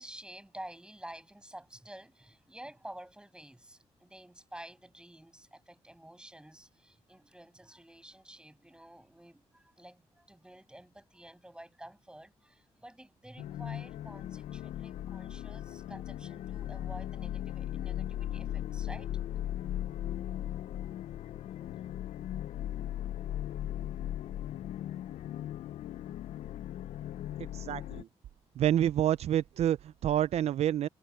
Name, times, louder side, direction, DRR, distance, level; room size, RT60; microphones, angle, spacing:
voice 1, 0.0-19.1, right 1 dB, 10° right, 7.5 m, -50 dB
sound 1, 13.4-28.0, left 12 dB, 80° left, 0.4 m, -38 dB
voice 2, 27.4-28.1 28.6-30.9, right 11 dB, 70° right, 0.4 m, -28 dB
cardioid pair, 85°, 11 cm